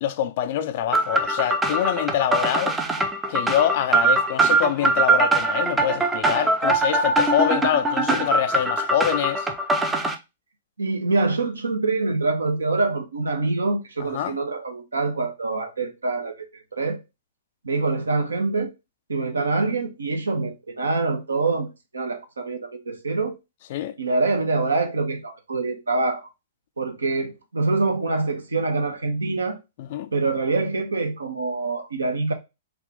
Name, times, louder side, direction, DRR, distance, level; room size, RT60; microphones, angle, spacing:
voice 1, 0.0-2.8 3.3-9.5 14.0-14.4 23.7-23.9 29.8-30.1, left 10 dB, 45° left, 0.4 m, -25 dB
sound 1, 0.9-10.1, right 2 dB, 10° right, 0.5 m, -22 dB
voice 2, 10.8-16.3 16.7-17.0 17.6-18.7 19.1-21.7 21.9-23.3 24.0-26.3 26.8-29.6 30.1-32.3, right 3 dB, 75° right, 0.8 m, -25 dB
3.4 x 2.4 x 3.5 m
figure-of-eight pair, 110°, 0 cm